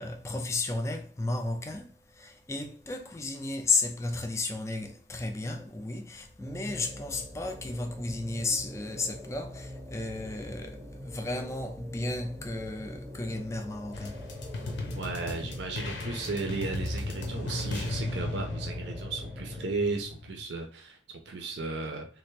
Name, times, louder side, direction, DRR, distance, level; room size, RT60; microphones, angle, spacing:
voice 1, 0.0-14.2, left 3 dB, 15° left, 0.4 m, -33 dB
sound 1, 6.4-19.7, left 1 dB, 5° right, 0.7 m, -43 dB
sound 2, 13.9-20.5, left 2 dB, 65° left, 0.6 m, -36 dB
voice 2, 15.0-22.1, right 3 dB, 65° right, 0.5 m, -35 dB
3.3 x 2.5 x 3.2 m
head